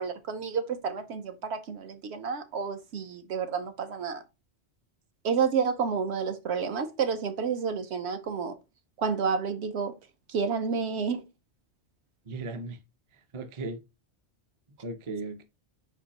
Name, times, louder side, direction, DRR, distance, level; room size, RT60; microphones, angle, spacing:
voice 1, 0.0-4.2 5.2-8.6 9.0-10.0 10.3-11.2, right 6 dB, 70° right, 0.9 m, -30 dB
voice 2, 12.2-12.8 13.1-13.8 14.7-15.4, right 3 dB, 40° right, 0.4 m, -37 dB
4.4 x 2.6 x 4.1 m
omnidirectional pair, 1.2 m